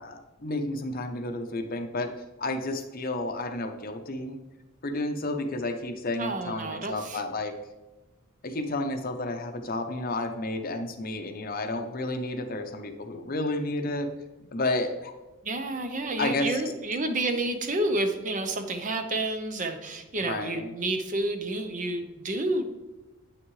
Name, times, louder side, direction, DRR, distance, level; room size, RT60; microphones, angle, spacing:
voice 1, 0.0-4.4 4.8-7.5 8.4-14.1 14.5-15.1 16.2-16.6 20.2-20.7, left 2 dB, 40° left, 6 dB, 0.7 m, -31 dB
voice 2, 6.2-7.2 15.4-22.6, right 2 dB, 35° right, 6 dB, 0.7 m, -30 dB
8.6 x 6.2 x 3.2 m, 1.1 s
head